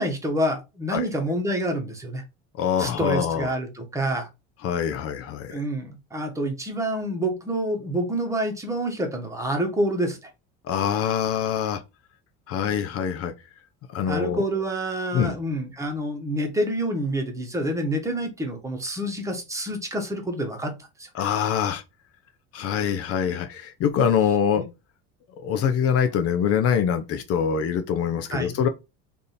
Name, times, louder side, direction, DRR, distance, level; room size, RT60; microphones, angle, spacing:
voice 1, 0.0-2.2 2.8-4.3 5.5-10.2 14.1-21.1 24.6-24.7 28.3-28.5, right 1 dB, 10° right, 1.1 m, -27 dB
voice 2, 2.6-3.5 4.6-5.6 10.6-11.8 12.5-13.3 13.9-14.4 15.1-15.3 21.1-21.8 22.5-24.6 25.4-28.7, left 8 dB, 50° left, 0.6 m, -24 dB
3.4 x 2.7 x 4.2 m
cardioid pair, 130°, 30 cm